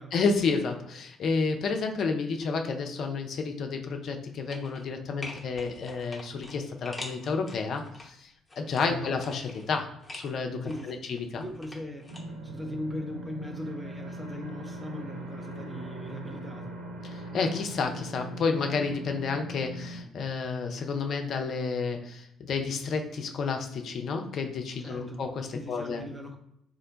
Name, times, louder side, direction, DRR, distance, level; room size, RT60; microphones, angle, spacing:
voice 1, 0.1-8.3 8.6-11.4 17.0-26.0, left 4 dB, 50° left, 5 dB, 0.4 m, -30 dB
sound 1, 4.5-4.9 5.2-8.0 8.5-10.3 10.7-12.2 12.5-12.6, left 2 dB, 20° left, 0.8 m, -44 dB
voice 2, 10.6-11.0 11.3-12.1 12.4-16.7 24.8-25.2 25.5-26.4, left 1 dB, 10° right, 3 dB, 0.6 m, -39 dB
sound 2, 12.1-20.0, right 1 dB, 80° right, 0.5 m, -40 dB
2.5 x 2.1 x 3.8 m, 0.77 s
figure-of-eight pair, 45°, 0 cm